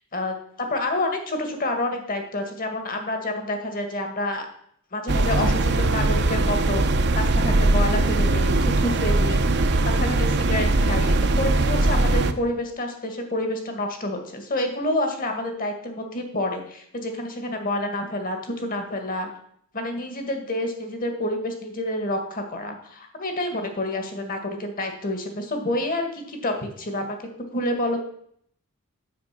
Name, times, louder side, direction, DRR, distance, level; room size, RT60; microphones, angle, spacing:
voice 1, 0.7-4.5 4.9-19.3 19.7-27.2 27.5-28.0, left 1 dB, 40° left, 5 dB, 1.9 m, -28 dB
sound 1, 5.1-12.3, right 2 dB, 50° right, 0.8 m, -21 dB
9.6 x 7.6 x 6.0 m, 0.66 s
head